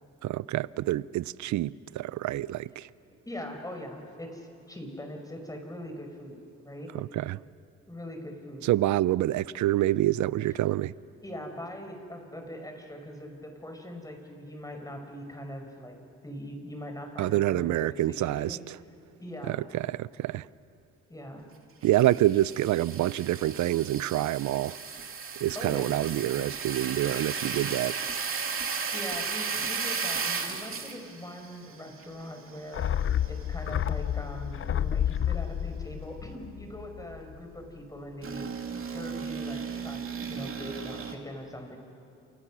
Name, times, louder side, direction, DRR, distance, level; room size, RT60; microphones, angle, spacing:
voice 1, 0.2-2.9 6.9-7.4 8.7-10.9 17.2-18.8 19.5-20.5 21.8-24.8 25.4-28.0, right 14 dB, 75° right, 0.6 m, -27 dB
voice 2, 3.2-6.4 6.6-6.9 7.9-8.7 10.5-10.7 11.2-16.0 16.2-18.6 19.2-19.7 21.1-21.5 25.5-26.0 28.9-32.9 33.3-38.4 38.8-41.8, equal, 10° left, 5.1 m, -41 dB
sound 1, 21.8-33.6 34.0-34.1 38.2-41.2, right 5 dB, 45° right, 2.7 m, -35 dB
sound 2, 32.7-37.3 37.6-37.7, left 9 dB, 45° left, 0.6 m, -30 dB
28.5 x 28.0 x 6.2 m
cardioid pair, 90°, 30 cm